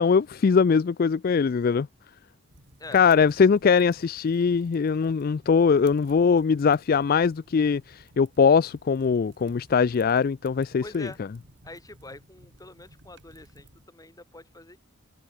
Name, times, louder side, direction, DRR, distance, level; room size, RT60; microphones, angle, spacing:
voice 1, 0.0-1.9 2.9-11.1, left 5 dB, 45° left, 0.3 m, -21 dB
sound 1, 2.5-13.9, right 1 dB, 60° right, 7.3 m, -56 dB
voice 2, 10.8-11.2 11.6-14.8, left 2 dB, 15° left, 5.7 m, -45 dB
head